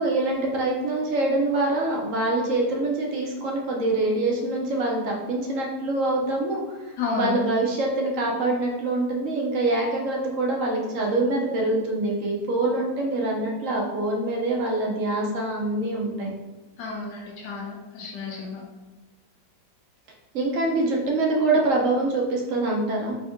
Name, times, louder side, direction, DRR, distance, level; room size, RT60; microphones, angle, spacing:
voice 1, 0.0-16.3 20.3-23.1, right 2 dB, 60° right, -1 dB, 0.9 m, -25 dB
voice 2, 7.0-7.4 16.8-18.6, left 3 dB, 80° left, -3 dB, 1.3 m, -31 dB
3.5 x 2.7 x 3.5 m, 1.1 s
omnidirectional pair, 1.8 m